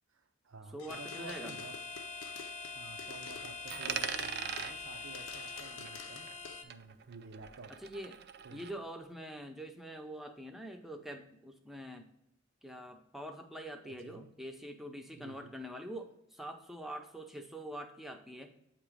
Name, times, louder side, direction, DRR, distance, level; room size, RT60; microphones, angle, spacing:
voice 1, 0.1-1.8 2.7-7.7 8.4-8.7 13.8-14.3 15.1-15.5, right 3 dB, 90° right, 6 dB, 0.6 m, -52 dB
voice 2, 0.7-1.6 7.8-8.2 8.5-12.1 12.6-18.5, equal, ahead, 4 dB, 0.5 m, -45 dB
sound 1, 0.8-4.9 5.1-6.6, left 6 dB, 85° left, 0.5 m, -50 dB
sound 2, 0.9-6.6, left 3 dB, 35° left, 0.7 m, -44 dB
Coin (dropping), 3.7-6.5 6.7-8.7, right 8 dB, 55° right, 0.4 m, -41 dB
8.3 x 2.9 x 4.9 m, 0.81 s
head